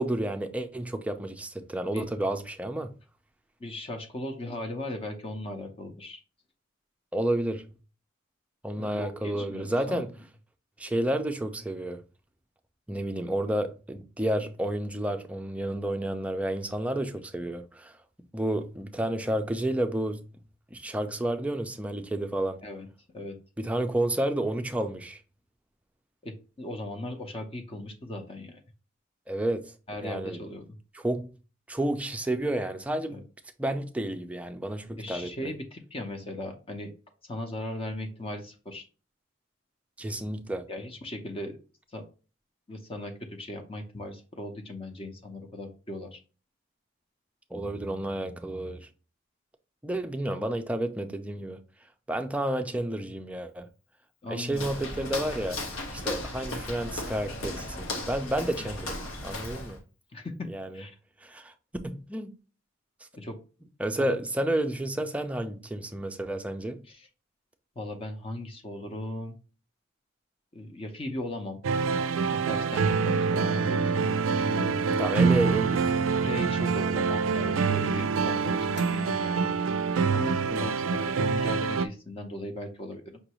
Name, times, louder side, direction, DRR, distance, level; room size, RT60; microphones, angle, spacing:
voice 1, 0.0-2.9 7.1-7.7 8.6-10.1 10.8-12.0 12.9-17.9 18.3-20.3 20.7-22.6 23.6-25.2 29.3-29.7 30.0-30.4 30.9-31.3 31.7-33.2 33.6-35.5 40.0-40.7 47.5-48.9 49.8-51.6 52.1-53.7 54.3-55.6 55.9-59.8 60.5-60.8 61.2-61.5 61.8-62.3 63.8-66.8 75.0-75.9 80.5-80.8, right 1 dB, 5° right, 0.4 m, -30 dB
voice 2, 3.6-6.2 8.8-10.1 22.6-22.9 23.1-23.4 26.2-28.6 29.9-30.6 33.1-33.2 35.0-36.9 37.3-38.8 40.7-41.6 41.9-42.0 42.7-46.2 54.2-55.0 58.6-58.7 60.1-60.9 63.1-63.4 64.0-64.1 66.9-67.1 67.8-69.4 70.5-71.6 72.3-74.8 76.2-79.5 80.1-83.2, left 1 dB, 30° left, 0.6 m, -38 dB
Walk footsteps, 54.5-59.8, left 2 dB, 85° left, 1.0 m, -36 dB
sound 1, 71.6-81.9, right 5 dB, 75° right, 0.3 m, -26 dB
sound 2, 73.0-79.6, right 2 dB, 60° left, 0.8 m, -41 dB
5.4 x 2.5 x 2.9 m
head